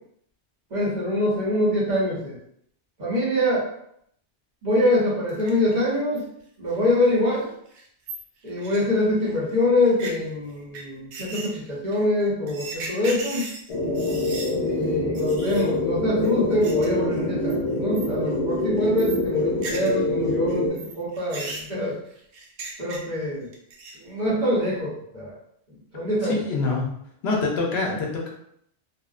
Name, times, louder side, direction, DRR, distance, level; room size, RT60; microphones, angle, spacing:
voice 1, 0.7-2.4 3.0-3.7 4.6-6.2 6.6-7.5 8.4-13.5 14.6-22.0 22.8-23.5 24.0-25.3 25.9-26.4, left 1 dB, 45° right, -7 dB, 0.9 m, -24 dB
sound 1, 5.3-5.7 6.2-6.3 6.7-6.8 7.1-7.2 7.4-7.5 7.7-9.3 9.8-10.1 10.7-10.8 11.1-14.5 14.8-14.9 15.1-15.7 16.2-16.9 17.1-17.5 17.9-18.3 18.6-20.0 20.3-23.2 23.5-24.1, right 3 dB, 85° right, 0.9 m, -37 dB
sound 2, 13.7-20.7, left 2 dB, 50° left, 0.4 m, -25 dB
voice 2, 26.2-26.9 27.2-28.3, left 3 dB, 75° left, -1 dB, 0.8 m, -25 dB
2.6 x 2.0 x 2.3 m, 0.72 s
omnidirectional pair, 1.1 m